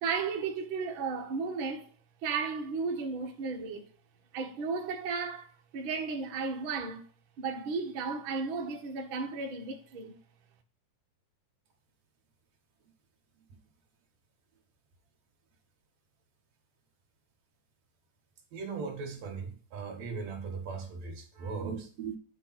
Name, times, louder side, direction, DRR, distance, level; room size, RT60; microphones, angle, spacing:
voice 1, 0.0-1.9 2.2-3.8 4.3-7.0 7.4-10.2, right 5 dB, 80° right, 1.1 m, -34 dB
voice 2, 18.5-22.2, right 5 dB, 55° right, 2.5 m, -38 dB
10.0 x 3.5 x 5.8 m
omnidirectional pair, 4.2 m